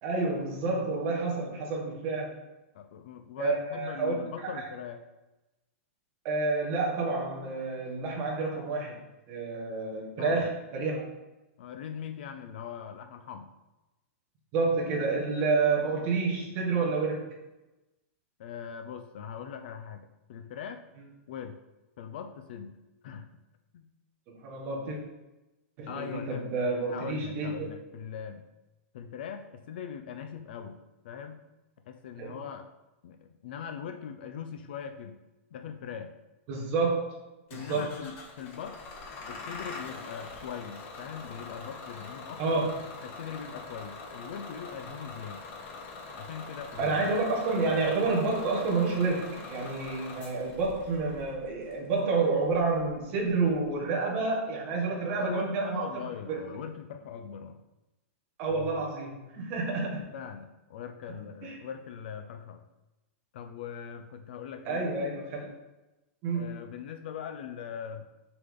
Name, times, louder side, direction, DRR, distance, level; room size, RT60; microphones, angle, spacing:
voice 1, 0.0-2.4 3.4-4.7 6.2-11.1 14.5-17.3 24.3-25.0 25.8-27.7 32.2-32.4 36.5-37.2 37.5-38.0 42.4-42.8 46.8-55.9 56.3-56.4 58.4-60.0 61.4-61.5 64.6-65.5 66.2-66.5, right 3 dB, 25° right, -2 dB, 1.7 m, -29 dB
voice 2, 2.7-5.0 10.2-10.5 11.6-13.5 16.8-16.9 18.4-20.8 21.3-21.6 22.0-22.8 23.0-23.3 23.7-23.9 25.9-26.5 26.9-28.4 28.9-30.8 31.0-31.4 31.9-32.6 33.0-35.2 35.5-36.1 37.5-38.8 39.3-42.6 43.0-45.4 46.1-47.1 55.2-57.6 58.5-58.9 60.1-62.6 63.3-64.9 66.3-68.1, left 7 dB, 40° left, 7 dB, 0.6 m, -41 dB
Bus / Engine starting, 37.5-53.7, left 3 dB, 20° left, 1.0 m, -44 dB
7.0 x 6.7 x 3.8 m, 1.0 s
supercardioid pair, 180°, 8 cm